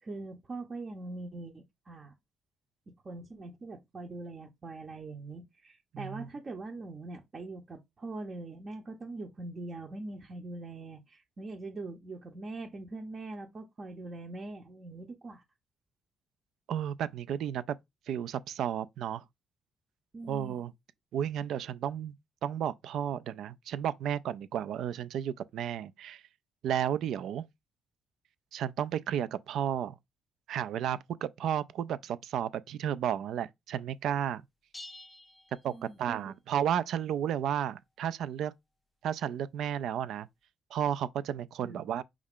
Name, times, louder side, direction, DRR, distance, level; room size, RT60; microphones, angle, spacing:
voice 1, 0.0-2.1 2.9-15.4 20.1-20.6 35.7-36.2 41.6-41.8, right 2 dB, 40° right, 0.6 m, -42 dB
voice 2, 5.9-6.3 16.7-17.8 18.1-19.2 20.2-20.7 21.1-22.1 22.4-26.2 26.6-27.4 28.5-30.0 30.5-34.4 35.6-38.5 39.0-40.3 40.7-42.0, right 9 dB, 75° right, 0.3 m, -33 dB
sound 1, 34.7-36.3, left 1 dB, 10° left, 0.3 m, -50 dB
5.3 x 2.4 x 3.5 m
cardioid pair, 90°, 0 cm